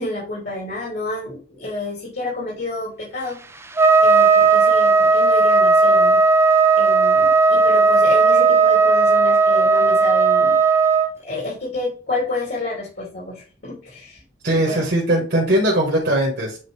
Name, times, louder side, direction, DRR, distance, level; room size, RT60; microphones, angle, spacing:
voice 1, 0.0-3.6 4.0-6.2 6.7-10.6 11.2-14.2 14.5-14.8, left 2 dB, 65° left, -5 dB, 2.8 m, -29 dB
Trumpet, 3.8-11.1, right 4 dB, 15° right, 0.4 m, -15 dB
voice 2, 14.4-16.6, right 1 dB, 55° right, -2 dB, 1.5 m, -19 dB
7.6 x 3.8 x 3.3 m, 0.37 s
head